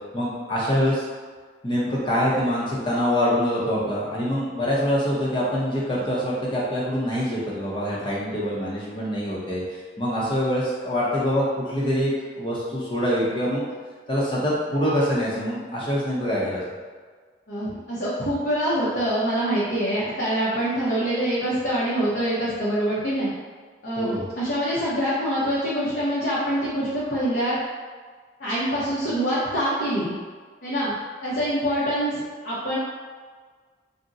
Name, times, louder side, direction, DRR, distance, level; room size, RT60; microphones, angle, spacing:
voice 1, 0.1-1.1 1.6-12.1 12.4-13.6 14.1-16.6 24.0-24.2, equal, 25° left, -6 dB, 0.7 m, -25 dB
voice 2, 17.5-23.3 23.8-27.6 28.4-30.1 30.6-30.9 31.2-32.8, equal, 60° left, -11 dB, 0.7 m, -25 dB
2.6 x 2.1 x 3.7 m, 1.5 s
head